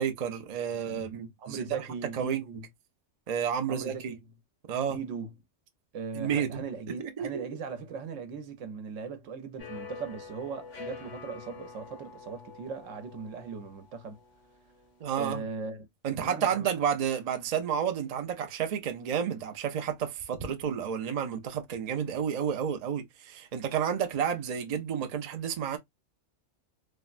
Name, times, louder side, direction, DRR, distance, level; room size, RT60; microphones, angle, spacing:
voice 1, 0.0-1.9 2.1-2.4 3.3-4.1 4.7-5.0 6.2-6.6 7.2-7.4 15.0-15.4 16.0-25.8, right 8 dB, 50° right, 0.4 m, -31 dB
voice 2, 1.4-2.6 3.7-4.2 4.9-5.3 5.9-14.2 15.2-15.9 16.2-16.7, right 5 dB, 85° right, 1.1 m, -39 dB
sound 1, 9.6-15.2, left 5 dB, 75° left, 1.4 m, -47 dB
3.5 x 2.1 x 2.4 m
omnidirectional pair, 1.3 m